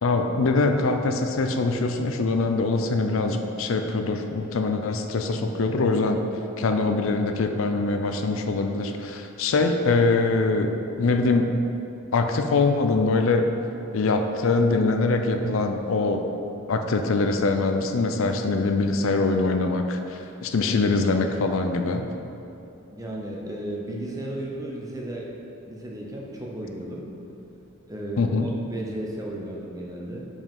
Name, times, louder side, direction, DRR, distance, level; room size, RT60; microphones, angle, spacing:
voice 1, 0.0-6.2 6.6-11.5 12.1-13.5 13.9-16.3 16.7-22.1 28.2-28.5, left 3 dB, 70° left, 5 dB, 0.5 m, -23 dB
voice 2, 22.9-25.3 25.6-27.1 27.9-30.3, right 1 dB, 15° right, -2 dB, 0.8 m, -34 dB
5.4 x 5.0 x 5.4 m, 2.8 s
head